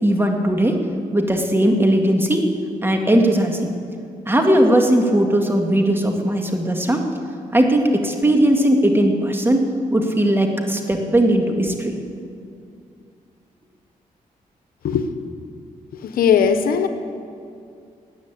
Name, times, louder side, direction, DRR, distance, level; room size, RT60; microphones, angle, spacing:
voice 1, 0.0-0.8 1.1-2.5 2.8-3.7 4.3-7.0 7.5-9.6 9.9-11.9, right 1 dB, 15° right, 3 dB, 2.2 m, -18 dB
voice 2, 16.0-16.9, left 7 dB, 80° left, 9 dB, 0.9 m, -18 dB
14.5 x 9.4 x 8.4 m, 2.4 s
cardioid pair, 60°, 15 cm